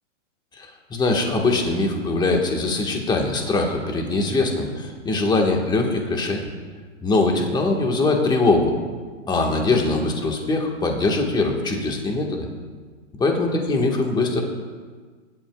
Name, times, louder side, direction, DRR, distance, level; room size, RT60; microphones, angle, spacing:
voice 1, 0.6-6.4 7.0-8.7 9.3-12.5 13.2-14.4, left 3 dB, 10° left, 1 dB, 1.5 m, -22 dB
21.0 x 11.5 x 2.3 m, 1.5 s
hypercardioid pair, 145°, 40 cm